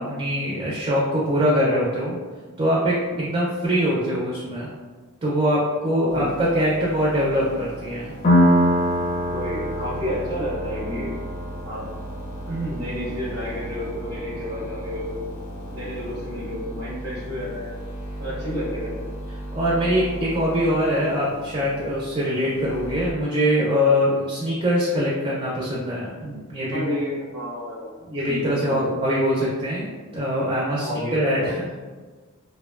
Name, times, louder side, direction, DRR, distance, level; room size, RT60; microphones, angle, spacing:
voice 1, 0.0-2.2 2.6-4.7 5.2-8.1 18.5-18.6 19.5-26.9 28.0-31.8, equal, 25° right, -5 dB, 0.3 m, -23 dB
sound 1, 6.1-23.1, right 1 dB, 80° left, 0.5 m, -37 dB
Piano, 8.2-15.6, equal, 35° left, 0.6 m, -25 dB
voice 2, 9.3-11.2 11.6-11.9 12.5-15.3 15.7-17.7 18.2-19.2 26.7-28.9 30.8-31.6, equal, 90° right, -9 dB, 0.7 m, -30 dB
2.6 x 2.1 x 2.2 m, 1.4 s
head